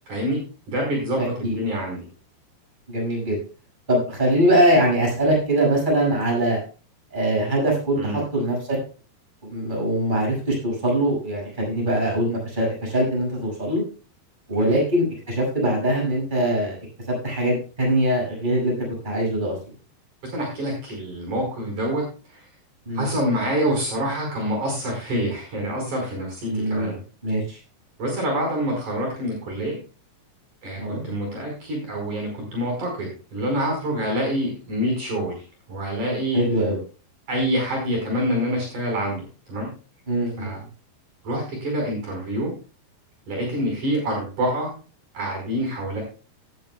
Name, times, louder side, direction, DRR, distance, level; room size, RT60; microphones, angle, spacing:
voice 1, 0.1-0.4 0.7-2.0 8.0-8.2 14.6-14.8 20.3-22.0 22.3-22.4 22.9-26.9 28.0-29.8 30.6-35.4 35.7-36.4 37.3-39.2 39.5-39.7 40.4-40.6 41.2-42.5 43.3-44.7 45.1-46.0, equal, 45° right, 1 dB, 6.2 m, -26 dB
voice 2, 1.2-1.6 2.9-3.4 3.9-6.6 7.1-8.8 9.4-13.8 14.5-16.8 17.1-18.8 19.0-19.6 22.9-23.1 26.5-27.6 30.8-31.0 36.3-36.8 40.1-40.5, right 1 dB, 10° right, -2 dB, 6.4 m, -22 dB
18.5 x 9.9 x 2.3 m, 0.35 s
omnidirectional pair, 4.8 m